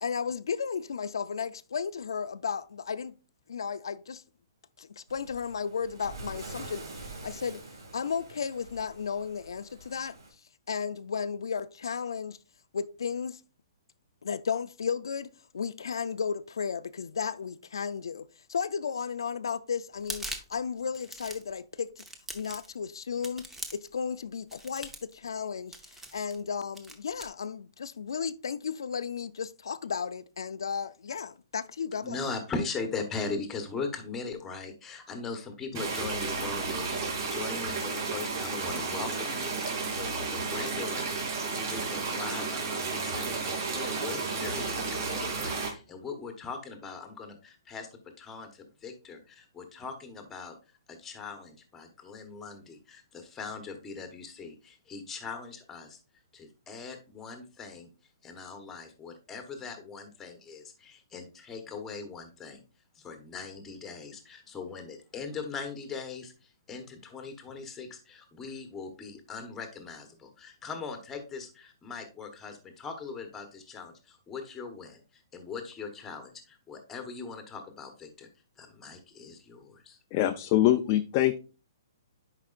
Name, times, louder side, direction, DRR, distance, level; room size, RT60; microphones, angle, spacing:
voice 1, 0.0-3.2 3.5-4.2 4.8-6.8 7.2-7.6 7.9-10.1 10.7-12.4 12.7-13.4 14.2-21.9 22.3-32.2, left 6 dB, 90° left, 0.5 m, -34 dB
Waves surf, 5.1-10.3, right 2 dB, 90° right, 2.4 m, -45 dB
sound 1, 20.0-20.6 20.9-21.5 22.0-22.8 23.2-23.9 24.5-25.1 25.7-26.4 26.7-27.3, right 2 dB, 5° right, 0.7 m, -41 dB
voice 2, 32.0-41.3 41.6-47.9 48.2-50.5 50.9-56.0 56.3-57.9 58.2-62.6 62.9-78.3 78.6-80.0, left 4 dB, 10° left, 1.1 m, -40 dB
sound 2, 35.7-45.7, right 4 dB, 45° right, 2.9 m, -32 dB
voice 3, 80.1-81.4, left 13 dB, 25° left, 0.4 m, -24 dB
10.5 x 4.9 x 2.5 m
hypercardioid pair, 165°, 2 cm